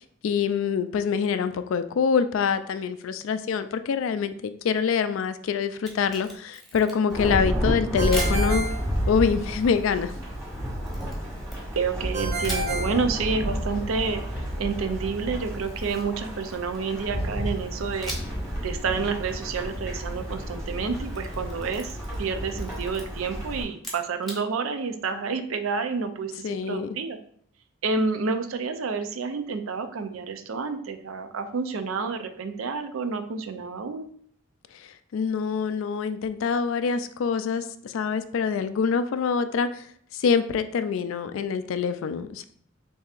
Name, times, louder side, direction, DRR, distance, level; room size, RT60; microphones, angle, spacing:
voice 1, 0.0-8.7 9.1-10.1 26.4-27.0 34.8-39.8 40.1-42.5, left 6 dB, 70° left, 11 dB, 0.3 m, -25 dB
Camera, 5.7-7.2 8.1-8.4 10.9-12.0 12.4-12.7 15.4-16.9 18.0-18.5 18.8-18.9 20.9-22.3 22.5-23.0 23.7-24.4, equal, ahead, 1.0 m, -39 dB
Thunderstorm / Rain, 7.1-23.6, equal, 15° right, 1.5 m, -31 dB
Ringtone, 8.0-9.6 12.1-13.8, right 2 dB, 35° right, 0.6 m, -32 dB
voice 2, 11.8-14.2 14.6-18.2 18.6-27.2 27.8-34.1, right 4 dB, 80° right, 8 dB, 0.5 m, -29 dB
6.7 x 2.7 x 2.4 m, 0.62 s
head